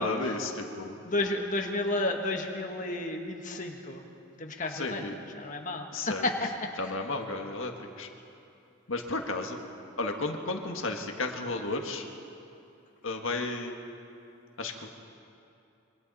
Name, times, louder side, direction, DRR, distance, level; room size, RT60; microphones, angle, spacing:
voice 1, 0.0-1.0 4.7-5.1 5.9-6.2 6.8-7.7 8.0-8.1 8.9-9.6 10.0-12.0 13.0-13.8 14.6-14.9, left 2 dB, 75° left, 3 dB, 1.6 m, -33 dB
voice 2, 1.0-4.0 4.4-5.0 5.4-7.0, left 2 dB, 40° left, 2 dB, 1.5 m, -32 dB
27.0 x 24.0 x 4.2 m, 2.7 s
head